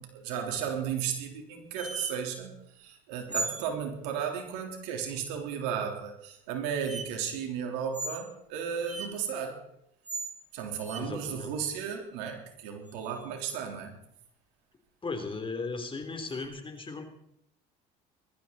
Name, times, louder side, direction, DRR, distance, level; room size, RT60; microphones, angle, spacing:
voice 1, 0.0-9.6 10.5-14.0, right 7 dB, 80° right, 2 dB, 3.7 m, -34 dB
sound 1, 1.8-2.1 3.3-3.7 5.9-6.0 6.8-7.0 7.9-8.2 8.9-9.1 10.0-10.3 10.8-11.0 12.9-13.5 16.4-16.5, right 3 dB, 35° right, 2.4 m, -36 dB
voice 2, 11.0-11.5 15.0-17.0, left 3 dB, 25° left, 6 dB, 3.2 m, -36 dB
20.0 x 13.5 x 4.2 m, 0.75 s
supercardioid pair, 85°, 21 cm